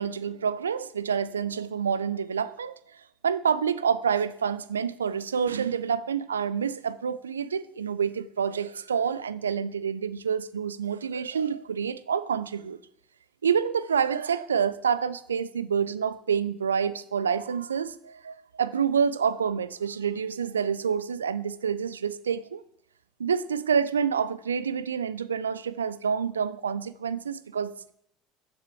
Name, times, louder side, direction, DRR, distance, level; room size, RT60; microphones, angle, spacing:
voice 1, 0.0-2.8 3.2-12.8 13.4-22.6 23.2-27.9, right 7 dB, 80° right, 0.3 m, -28 dB
6.9 x 6.7 x 4.4 m
figure-of-eight pair, 65°, 0 cm